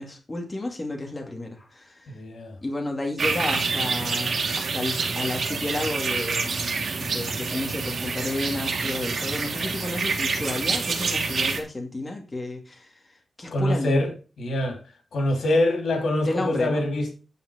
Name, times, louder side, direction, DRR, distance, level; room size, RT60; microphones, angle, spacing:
voice 1, 0.0-2.1 2.6-12.9 13.4-14.0 16.3-16.8, left 2 dB, 25° left, 2.3 m, -32 dB
voice 2, 2.1-2.6 13.5-14.1 14.4-14.8 15.1-17.1, left 1 dB, 90° left, 3.2 m, -24 dB
sound 1, 3.2-11.6, right 4 dB, 65° right, 1.9 m, -27 dB
9.4 x 7.2 x 5.1 m
wide cardioid pair, 140°, 0 cm